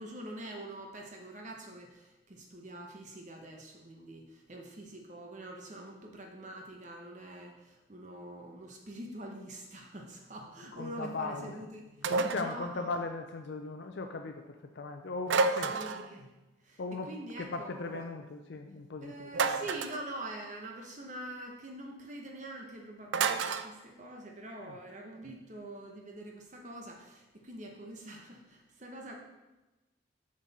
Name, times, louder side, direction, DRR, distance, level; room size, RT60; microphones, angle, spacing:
voice 1, 0.0-12.9 15.7-16.3 16.6-18.0 19.0-29.1, right 1 dB, 40° right, 1 dB, 0.9 m, -45 dB
voice 2, 10.7-11.6 12.1-15.7 16.8-19.6 24.6-24.8, left 3 dB, 65° left, 5 dB, 0.5 m, -38 dB
sound 1, 12.0-12.5 15.3-16.1 19.3-20.0 23.1-23.7, right 4 dB, 80° right, 0.4 m, -29 dB
7.3 x 6.4 x 4.1 m, 1.1 s
head